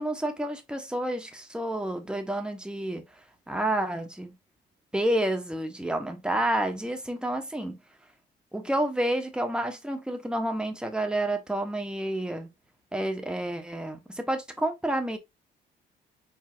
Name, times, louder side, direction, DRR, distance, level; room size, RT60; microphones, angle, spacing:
voice 1, 0.0-3.0 3.5-4.3 4.9-7.8 8.5-12.5 12.9-15.2, right 1 dB, 5° right, 1.2 m, -29 dB
4.8 x 3.5 x 2.5 m
cardioid pair, 90°, 20 cm